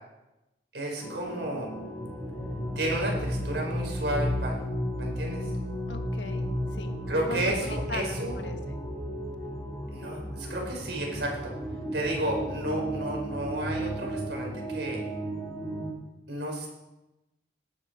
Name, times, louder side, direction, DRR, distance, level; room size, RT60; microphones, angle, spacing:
voice 1, 0.7-1.7 2.7-4.6 5.0-5.4 7.1-8.4 9.9-11.5 11.9-15.0 16.3-16.7, right 1 dB, 75° right, 0 dB, 4.9 m, -32 dB
sound 1, 1.0-15.9, equal, 10° left, 4.8 m, -33 dB
voice 2, 5.9-6.5 6.7-7.0 7.3-8.8, left 2 dB, 90° left, 5 dB, 1.5 m, -39 dB
19.5 x 10.0 x 4.8 m, 1.0 s
head